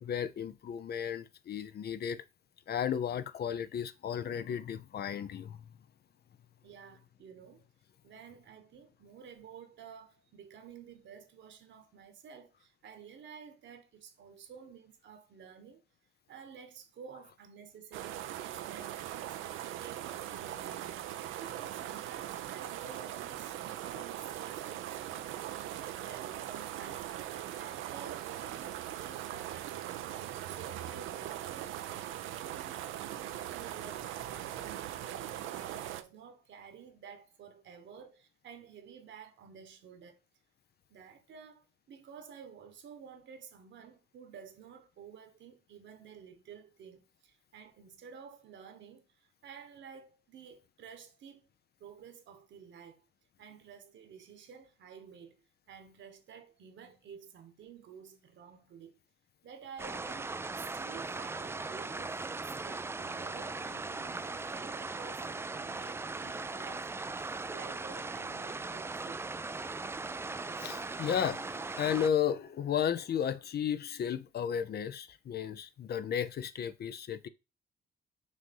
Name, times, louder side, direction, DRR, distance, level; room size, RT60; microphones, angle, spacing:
voice 1, 0.0-2.2 2.7-5.6 70.6-77.3, left 8 dB, 55° left, 0.6 m, -34 dB
voice 2, 6.6-7.6 8.0-15.8 16.3-21.0 21.4-31.8 32.2-34.2 34.5-40.2 40.9-51.5 51.8-53.0 53.4-59.0 59.4-69.2, right 7 dB, 70° right, 1.3 m, -52 dB
sound 1, 17.9-36.0, right 12 dB, 90° right, 0.6 m, -40 dB
sound 2, 59.8-72.1, right 3 dB, 15° right, 0.3 m, -39 dB
6.4 x 2.7 x 5.3 m
cardioid pair, 90°, 20 cm